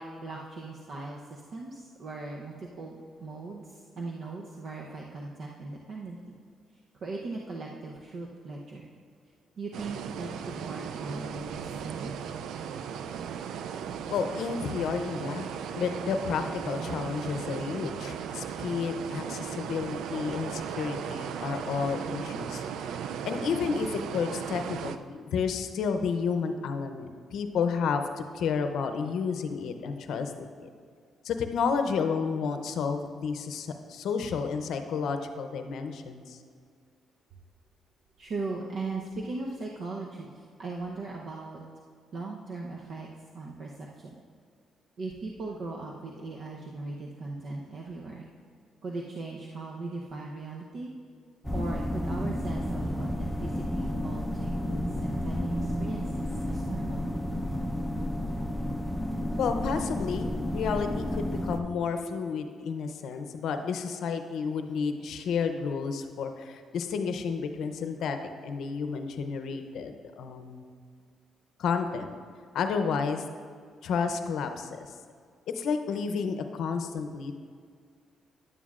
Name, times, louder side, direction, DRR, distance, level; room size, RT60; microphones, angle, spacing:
voice 1, 0.0-6.3 6.9-8.9 9.6-12.1 38.2-41.6 42.1-43.1 43.3-44.1 45.0-48.3 48.8-50.9 51.5-57.0, right 3 dB, 60° right, -1 dB, 0.8 m, -39 dB
sound 1, 9.7-25.0, right 7 dB, 80° right, 0.3 m, -36 dB
voice 2, 14.1-15.5 15.7-22.6 23.2-28.0 28.3-30.7 31.2-36.4 59.4-68.2 68.4-70.7 71.6-72.1 72.5-73.2 73.8-74.9 75.5-77.3, left 5 dB, 75° left, 7 dB, 0.6 m, -31 dB
sound 2, 51.4-61.6, left 1 dB, 5° left, 0.7 m, -31 dB
11.0 x 9.2 x 2.5 m, 2.1 s
cardioid pair, 90°, 0 cm